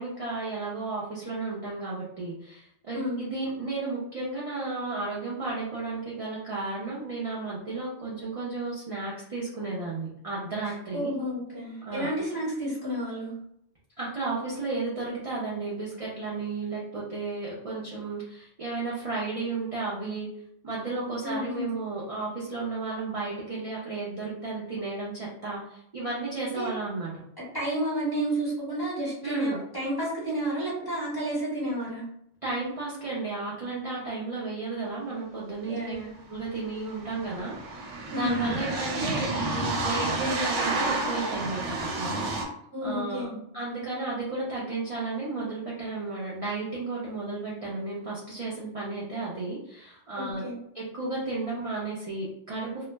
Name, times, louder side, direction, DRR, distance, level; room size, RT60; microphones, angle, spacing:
voice 1, 0.0-11.1 11.8-12.1 14.0-20.3 20.6-27.2 29.2-29.6 32.4-35.9 36.3-42.2 42.8-43.3 43.5-50.4 50.7-52.8, right 3 dB, 45° right, -6 dB, 0.4 m, -33 dB
voice 2, 10.6-13.3 21.2-21.7 26.5-26.7 27.5-32.0 35.6-36.1 38.1-38.7 42.7-43.5 50.2-50.6, right 1 dB, 20° left, -7 dB, 1.2 m, -31 dB
sound 1, 35.9-36.0 36.2-42.4, right 2 dB, 80° right, 0.9 m, -30 dB
2.3 x 2.0 x 3.2 m, 0.74 s
omnidirectional pair, 1.2 m